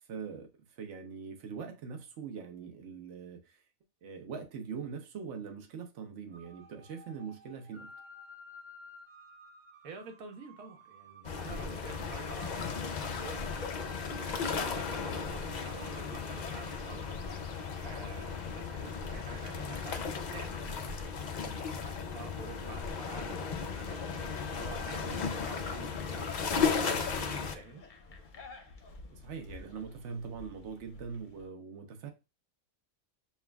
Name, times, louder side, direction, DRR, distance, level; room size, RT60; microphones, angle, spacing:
voice 1, 0.1-3.6 4.0-7.9 14.1-14.3 21.4-21.6 29.1-32.1, right 6 dB, 60° right, 1.1 m, -42 dB
sound 1, 6.3-25.0, left 1 dB, 45° right, 0.7 m, -55 dB
voice 2, 9.8-13.5 14.1-17.2 17.4-21.0 21.6-24.2 24.5-27.8, right 5 dB, 85° right, 1.2 m, -48 dB
sound 2, 11.2-27.5, left 5 dB, 80° left, 0.4 m, -35 dB
sound 3, 18.9-31.5, left 3 dB, 45° left, 0.7 m, -52 dB
6.9 x 2.4 x 2.2 m
omnidirectional pair, 1.4 m